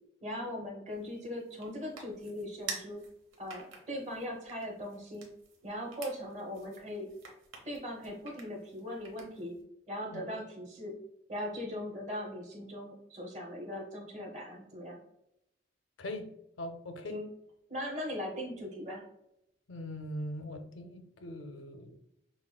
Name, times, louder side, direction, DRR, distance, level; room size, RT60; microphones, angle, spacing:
voice 1, 0.2-3.0 3.4-5.3 5.6-7.1 7.6-9.5 9.9-11.0 11.3-15.0 17.1-17.3 17.7-19.0, left 1 dB, 35° right, -1 dB, 0.9 m, -39 dB
sound 1, 0.9-9.6, right 5 dB, 85° right, 0.9 m, -49 dB
voice 2, 16.0-16.3 16.6-17.2 19.7-22.0, left 1 dB, 80° left, 6 dB, 0.5 m, -41 dB
5.7 x 2.3 x 2.2 m, 0.81 s
head